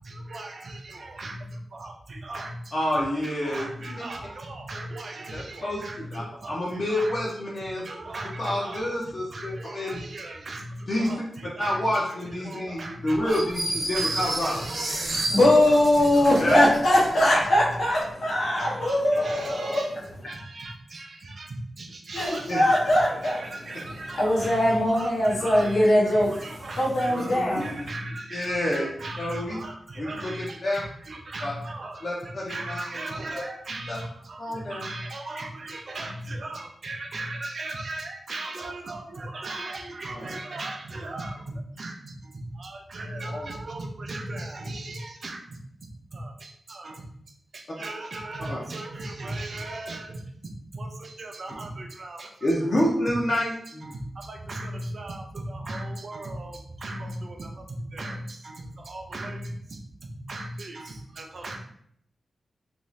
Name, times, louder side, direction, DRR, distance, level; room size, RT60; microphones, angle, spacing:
voice 1, 0.0-2.9 3.2-7.2 7.8-13.5 14.0-15.4 15.7-15.8 16.1-16.4 17.4-17.5 17.9-18.1 18.6-19.9 20.3-47.1 47.5-53.1 53.4-53.5 53.8-61.6, right 2 dB, 45° right, 3 dB, 0.4 m, -38 dB
voice 2, 2.7-4.0 5.3-7.9 8.4-10.0 10.9-11.1 11.6-14.7 16.4-16.6 22.1-22.6 27.1-27.8 28.3-28.9 29.2-29.6 30.0-30.8 31.4-31.5 32.0-32.8 33.9-34.0 34.4-34.9 40.1-40.3 43.3-43.5 48.5-48.6 52.4-53.9, left 1 dB, 40° left, -4 dB, 0.5 m, -28 dB
sound 1, 13.3-17.3, right 2 dB, 60° right, 0.8 m, -31 dB
voice 3, 15.3-20.2 22.2-27.8, left 1 dB, 70° left, -5 dB, 0.8 m, -22 dB
2.5 x 2.4 x 3.1 m, 0.68 s
wide cardioid pair, 180°, 0 cm